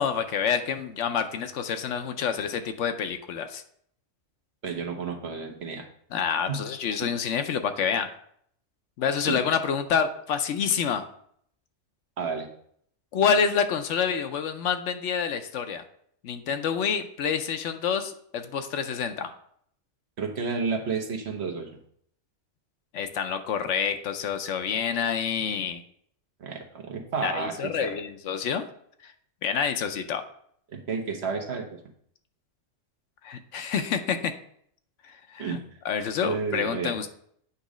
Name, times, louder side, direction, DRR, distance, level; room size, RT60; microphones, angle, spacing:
voice 1, 0.0-3.6 6.1-8.1 9.0-11.0 13.1-15.8 16.2-19.3 22.9-25.8 27.2-28.6 29.0-29.1 29.4-30.2 33.2-34.4 35.1-35.6 35.8-37.1, left 7 dB, 75° left, 8 dB, 0.9 m, -27 dB
voice 2, 4.6-5.8 6.5-6.6 9.3-9.4 12.2-12.5 20.2-21.7 26.4-27.9 30.7-31.7 35.4-35.6 36.2-36.9, right 5 dB, 60° right, 2 dB, 1.1 m, -31 dB
8.2 x 3.1 x 4.9 m, 0.66 s
omnidirectional pair, 1.3 m